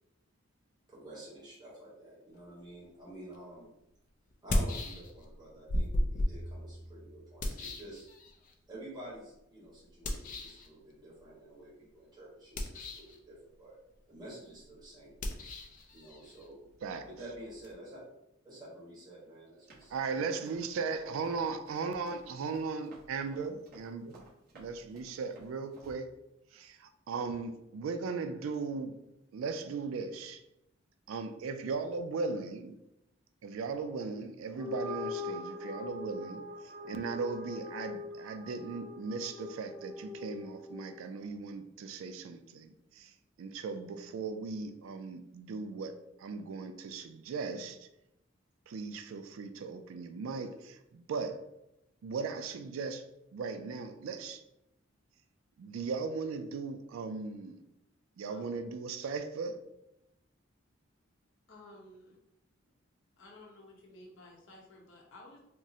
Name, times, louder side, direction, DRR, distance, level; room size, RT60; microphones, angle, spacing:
voice 1, 0.9-3.7 4.4-8.1 8.7-13.8 14.1-15.1 15.9-16.7 17.0-18.0 18.4-20.4, right 1 dB, 20° right, -8 dB, 1.1 m, -49 dB
sound 1, 3.3-3.4 4.3-5.4 5.7-8.5 10.0-10.7 12.4-13.2 15.1-17.7, left 1 dB, 40° left, 0.4 m, -35 dB
Run, 19.7-25.9, right 2 dB, 50° right, 0.9 m, -57 dB
voice 2, 19.9-24.2 24.6-26.1 26.5-28.9 29.3-30.4 31.1-32.8 33.4-36.4 36.9-43.1 43.4-45.9 46.2-47.8 48.7-51.4 52.0-53.0 53.3-54.4 55.6-57.6 58.2-59.6, right 4 dB, 90° right, 8 dB, 0.3 m, -37 dB
sound 2, 34.5-41.1, left 3 dB, ahead, 0.8 m, -42 dB
voice 3, 58.3-58.6 61.5-62.2 63.2-65.4, left 1 dB, 70° left, -2 dB, 0.8 m, -54 dB
3.6 x 2.0 x 2.7 m, 0.85 s
head